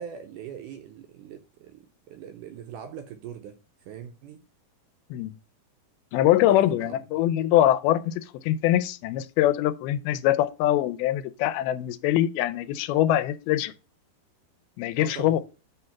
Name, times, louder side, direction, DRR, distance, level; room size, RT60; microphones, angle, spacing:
voice 1, 0.0-3.6 3.9-4.4 6.4-7.0 15.0-15.4, right 8 dB, 80° right, 1.9 m, -41 dB
voice 2, 6.1-13.7 14.8-15.4, left 13 dB, 85° left, 2.5 m, -23 dB
7.4 x 3.3 x 5.7 m
omnidirectional pair, 4.3 m